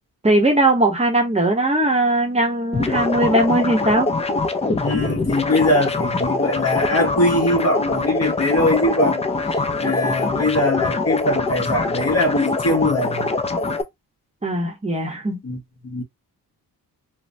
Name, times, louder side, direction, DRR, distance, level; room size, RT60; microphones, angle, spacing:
voice 1, 0.2-4.1 14.4-15.4, right 1 dB, 15° right, 0.8 m, -19 dB
sound 1, 2.7-13.8, left 3 dB, 20° left, 0.3 m, -23 dB
voice 2, 4.8-13.3 15.4-16.0, left 1 dB, 40° left, 1.1 m, -21 dB
3.2 x 2.0 x 2.6 m
cardioid pair, 110°, 37 cm